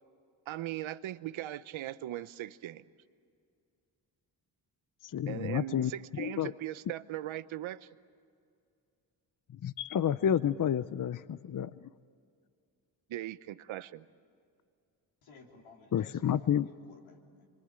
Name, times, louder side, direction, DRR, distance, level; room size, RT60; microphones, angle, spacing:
voice 1, 0.5-2.8 5.3-7.9 13.1-14.1, right 14 dB, 80° right, 15 dB, 0.8 m, -39 dB
voice 2, 5.1-5.9 6.2-6.5 9.6-11.7 15.9-16.7, left 9 dB, 45° left, 16 dB, 0.7 m, -30 dB
voice 3, 15.2-17.5, left 4 dB, 85° left, 0 dB, 3.7 m, -56 dB
24.5 x 23.5 x 8.9 m, 2.3 s
cardioid pair, 60°, 47 cm